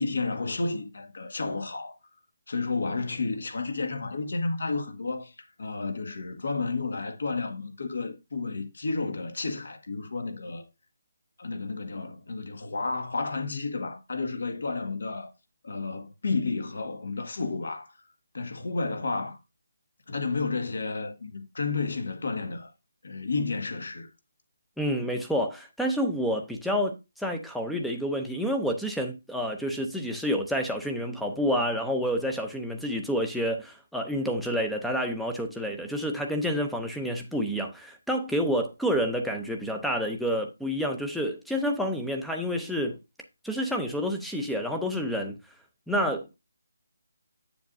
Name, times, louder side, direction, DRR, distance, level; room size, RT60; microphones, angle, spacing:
voice 1, 0.0-2.0 2.5-10.7 11.4-15.3 15.6-18.0 18.3-19.4 20.1-22.7 23.0-24.1, left 3 dB, 70° left, 1.7 m, -31 dB
voice 2, 24.8-43.0 43.4-45.4 45.9-46.4, equal, ahead, 0.6 m, -29 dB
8.1 x 7.1 x 2.6 m
hypercardioid pair, 170°, 0 cm